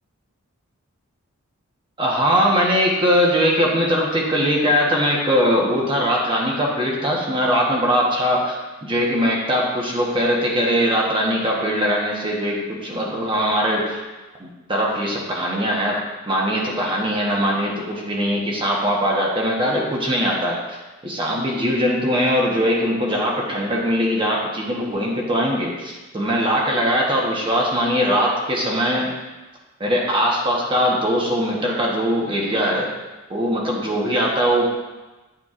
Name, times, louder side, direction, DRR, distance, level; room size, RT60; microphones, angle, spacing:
voice 1, 2.0-8.6 8.8-14.0 14.4-16.0 16.3-29.1 29.8-32.9 33.3-34.7, equal, 25° right, -3 dB, 1.1 m, -21 dB
9.3 x 6.7 x 2.5 m, 1.2 s
head